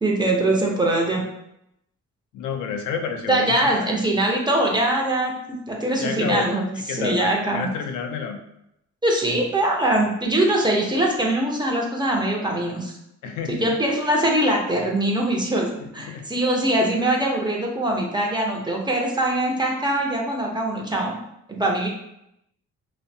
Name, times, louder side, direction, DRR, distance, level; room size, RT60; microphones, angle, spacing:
voice 1, 0.0-1.2 3.3-7.7 9.0-12.9 13.5-21.2 21.5-21.9, right 1 dB, 15° right, -1 dB, 0.5 m, -22 dB
voice 2, 2.3-3.9 6.0-6.6 6.9-8.4 13.2-13.8 15.8-16.3, left 6 dB, 80° left, 5 dB, 0.5 m, -30 dB
2.5 x 2.1 x 2.6 m, 0.80 s
cardioid pair, 90°, 30 cm